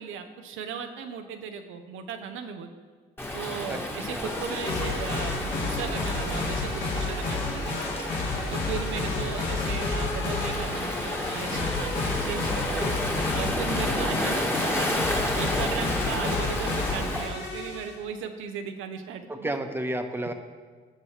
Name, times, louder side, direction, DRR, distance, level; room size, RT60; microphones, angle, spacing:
voice 1, 0.0-2.7 3.3-7.9 8.5-12.9 13.3-19.5, right 7 dB, 85° right, 6 dB, 0.8 m, -37 dB
Waves surf, 3.2-17.3, left 1 dB, 10° left, 1.5 m, -32 dB
sound 1, 4.2-18.0, left 2 dB, 70° left, 3.2 m, -30 dB
voice 2, 19.3-20.3, right 1 dB, 10° right, 5 dB, 1.0 m, -31 dB
18.5 x 6.2 x 3.2 m, 1.5 s
cardioid pair, 90°, 20 cm